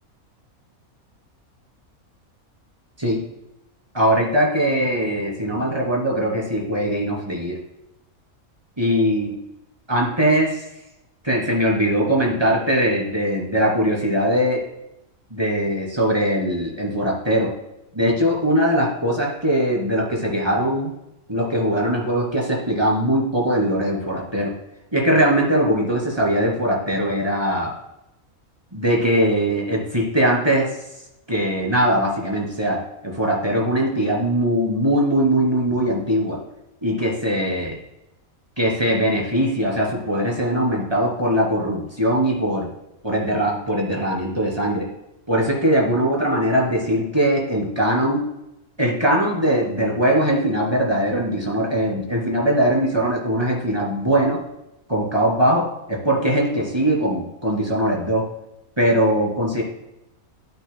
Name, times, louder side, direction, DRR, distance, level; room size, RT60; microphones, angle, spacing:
voice 1, 3.9-7.6 8.8-9.4 9.9-10.6 11.2-14.6 15.3-17.5 17.9-20.9 21.3-24.5 24.9-27.7 28.7-30.7 31.3-36.4 36.8-37.8 38.6-42.7 43.0-44.9 45.3-48.3 48.8-54.4 54.9-58.3 58.8-59.6, equal, 20° right, -3 dB, 2.9 m, -21 dB
11.0 x 9.7 x 2.2 m, 0.88 s
omnidirectional pair, 1.5 m